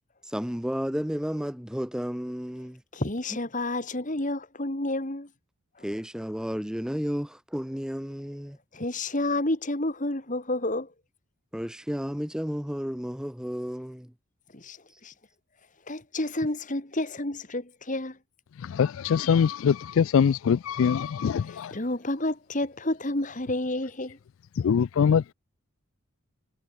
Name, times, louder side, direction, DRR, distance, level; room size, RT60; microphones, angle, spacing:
voice 1, 0.2-2.8 5.8-8.6 11.5-14.1 14.9-15.0, equal, 5° right, 0.7 m, -32 dB
voice 2, 2.9-5.3 8.7-10.9 14.5-14.8 15.0-15.1 15.9-18.2 21.4-24.2, left 1 dB, 35° left, 2.1 m, -30 dB
voice 3, 18.7-21.7 24.6-25.3, left 7 dB, 65° left, 0.3 m, -23 dB
head